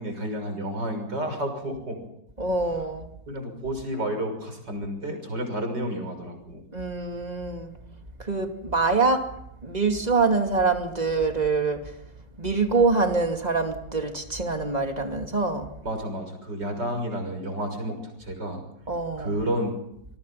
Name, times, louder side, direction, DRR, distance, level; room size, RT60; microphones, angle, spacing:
voice 1, 0.0-2.0 3.3-6.6 15.8-18.6 19.2-19.7, equal, 75° right, 7.1 m, -31 dB
voice 2, 2.4-3.1 6.7-7.7 8.2-9.3 9.6-11.9 12.4-15.7 18.9-19.4, right 4 dB, 20° right, 2.7 m, -25 dB
26.5 x 22.0 x 5.8 m
omnidirectional pair, 1.9 m